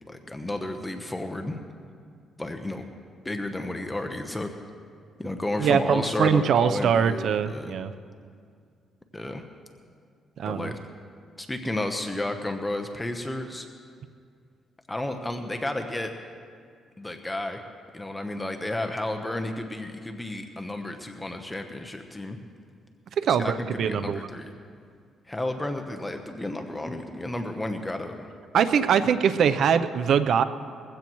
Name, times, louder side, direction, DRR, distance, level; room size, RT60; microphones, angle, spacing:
voice 1, 0.1-1.6 2.4-2.8 3.2-4.5 5.2-7.8 9.1-9.5 10.5-10.8 11.4-13.7 14.9-16.1 17.0-17.6 17.9-22.4 23.4-24.5 25.3-28.3, left 1 dB, 10° left, 5 dB, 1.0 m, -32 dB
voice 2, 5.6-7.9 10.4-10.7 23.2-24.2 28.5-30.4, right 7 dB, 65° right, 11 dB, 0.6 m, -22 dB
21.0 x 15.5 x 3.1 m, 2.2 s
cardioid pair, 90°, 0 cm